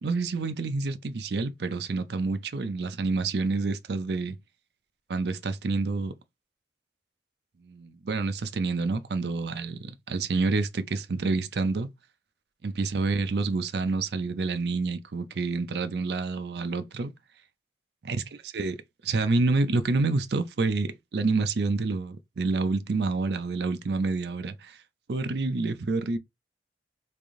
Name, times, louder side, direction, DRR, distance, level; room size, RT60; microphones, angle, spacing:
voice 1, 0.0-4.4 5.1-6.1 7.6-11.9 12.6-17.1 18.0-18.8 19.0-24.8 25.1-26.2, right 3 dB, 70° right, 0.5 m, -28 dB
3.3 x 2.6 x 3.6 m
head